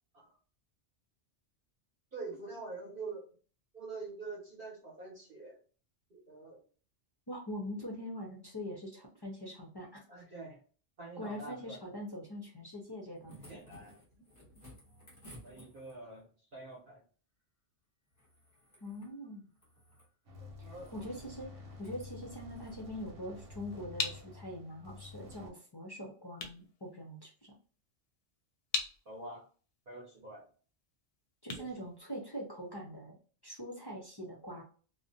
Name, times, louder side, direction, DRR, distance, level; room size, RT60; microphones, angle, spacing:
voice 1, 2.1-3.2 3.7-5.6 6.1-6.6 10.1-10.6 11.0-11.8 13.5-13.9 15.4-17.0 20.4-21.0 29.1-29.4 29.9-30.5 31.6-31.7, right 3 dB, 50° right, -3 dB, 0.9 m, -45 dB
voice 2, 7.3-10.0 11.2-13.3 18.8-19.5 20.7-27.5 31.4-33.2 33.4-34.6, equal, 40° left, -2 dB, 0.3 m, -43 dB
sound 1, 12.9-16.2 18.1-19.1 19.5-20.1 20.6-21.1 21.7-22.0 22.5-22.8 24.1-24.2, equal, 15° left, 0.8 m, -56 dB
sound 2, 20.2-25.5, left 2 dB, 90° right, 1.1 m, -50 dB
sound 3, 23.3-32.7, left 4 dB, 65° left, 0.7 m, -43 dB
2.5 x 2.1 x 2.5 m, 0.40 s
omnidirectional pair, 1.2 m